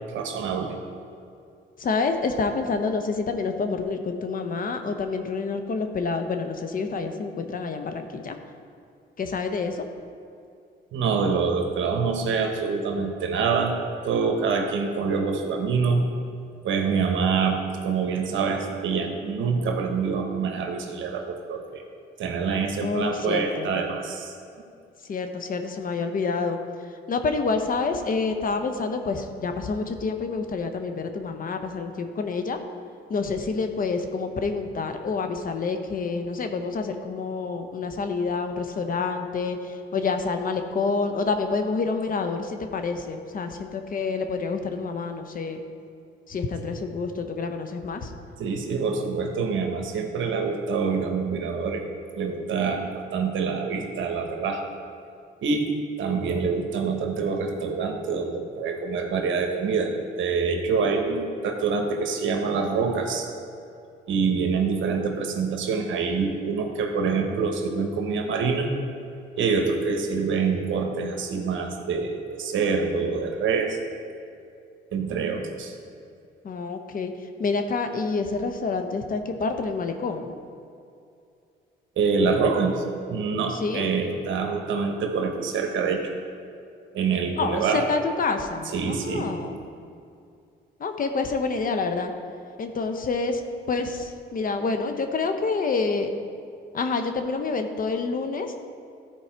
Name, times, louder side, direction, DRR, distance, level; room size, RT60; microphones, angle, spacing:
voice 1, 0.1-0.8 10.9-13.8 14.0-16.1 16.6-21.8 22.2-24.3 48.4-51.8 52.1-54.7 55.4-63.3 64.1-68.7 69.4-73.8 74.9-75.7 82.0-82.8 83.1-86.1 86.9-87.9 88.7-89.3, right 5 dB, 75° right, 3 dB, 1.2 m, -26 dB
voice 2, 1.8-8.4 9.2-9.9 22.8-23.8 25.0-32.6 33.1-45.6 46.3-48.1 76.4-80.3 83.5-83.9 87.4-89.6 90.8-92.1 92.6-96.1 96.7-98.5, left 4 dB, 45° left, 6 dB, 0.9 m, -28 dB
13.5 x 4.7 x 4.5 m, 2.5 s
cardioid pair, 90°, 20 cm